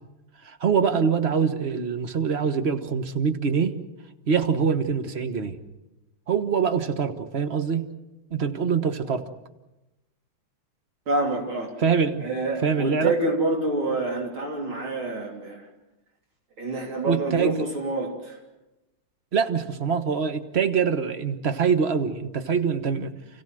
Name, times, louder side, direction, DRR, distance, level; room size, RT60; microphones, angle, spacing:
voice 1, 0.4-3.7 4.3-5.6 6.3-7.9 8.3-9.2 11.8-12.3 12.6-13.1 17.0-17.6 19.3-23.1, right 6 dB, 35° right, 8 dB, 1.2 m, -24 dB
voice 2, 11.1-11.8 12.2-15.7 16.6-18.4, right 2 dB, 70° right, 0 dB, 4.1 m, -27 dB
29.5 x 16.0 x 7.7 m, 1.0 s
omnidirectional pair, 2.4 m